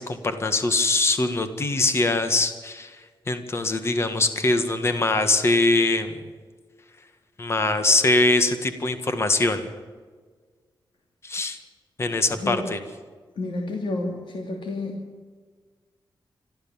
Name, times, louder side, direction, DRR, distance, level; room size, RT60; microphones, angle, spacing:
voice 1, 0.0-3.0 3.3-6.2 7.4-9.7 11.2-11.6 12.0-12.8, left 2 dB, 30° left, 9 dB, 1.7 m, -22 dB
voice 2, 12.3-12.7 13.4-15.0, left 2 dB, 80° left, 1 dB, 2.8 m, -30 dB
27.0 x 13.5 x 7.3 m, 1.5 s
wide cardioid pair, 170°, 8 cm